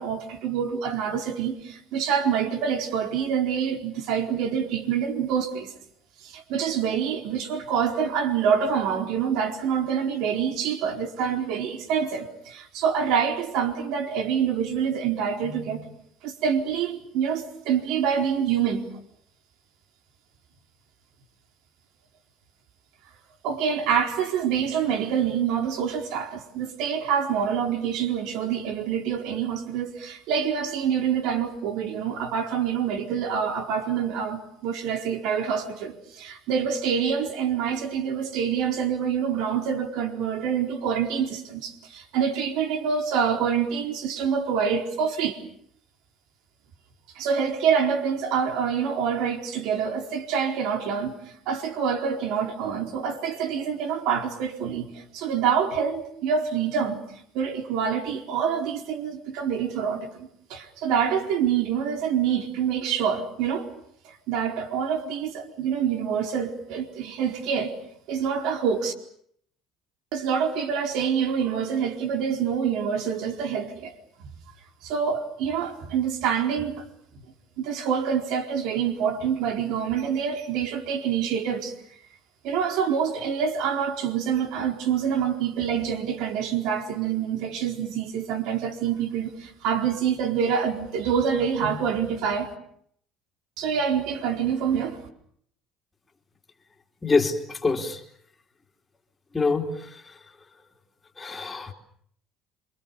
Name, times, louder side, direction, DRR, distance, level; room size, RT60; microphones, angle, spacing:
voice 1, 0.0-5.7 6.2-15.9 16.2-18.9 23.4-45.4 47.1-51.1 51.5-57.0 57.3-63.7 64.0-67.7 68.1-68.9 70.1-73.9 74.8-76.9 77.6-81.7 82.4-92.5 93.6-95.0, right 7 dB, 75° right, 4.3 m, -26 dB
voice 2, 97.0-98.0 99.3-100.2 101.2-101.7, left 4 dB, 15° left, 3.2 m, -26 dB
27.5 x 26.0 x 7.0 m
supercardioid pair, 105°, 0 cm